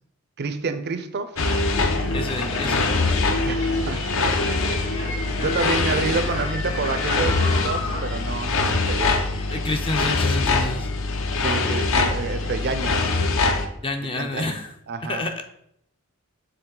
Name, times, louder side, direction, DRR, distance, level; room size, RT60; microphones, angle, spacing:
voice 1, 0.4-1.4 3.5-4.1 4.7-9.1 11.4-13.3 14.2-14.6 14.9-15.2, right 4 dB, 50° right, 10 dB, 0.5 m, -29 dB
sound 1, 1.4-13.7, left 3 dB, 60° left, 0.7 m, -23 dB
voice 2, 2.1-3.0 9.5-10.9 13.8-14.7 15.1-15.4, left 2 dB, 25° left, 5 dB, 0.5 m, -28 dB
sound 2, 2.3-8.0, left 2 dB, 85° left, 2.3 m, -33 dB
6.8 x 3.9 x 3.8 m, 0.73 s
head